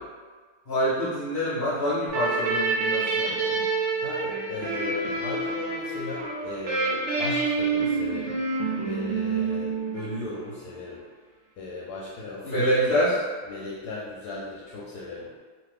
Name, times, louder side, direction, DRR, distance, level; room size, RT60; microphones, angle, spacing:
voice 1, 0.7-3.6 12.4-13.2, equal, 45° left, -9 dB, 0.8 m, -26 dB
sound 1, 2.1-10.6, right 4 dB, 70° right, 0.7 m, -28 dB
voice 2, 4.0-11.0 11.6-13.0 13.4-15.4, left 2 dB, 75° left, -5 dB, 1.1 m, -37 dB
2.7 x 2.5 x 3.2 m, 1.4 s
omnidirectional pair, 1.9 m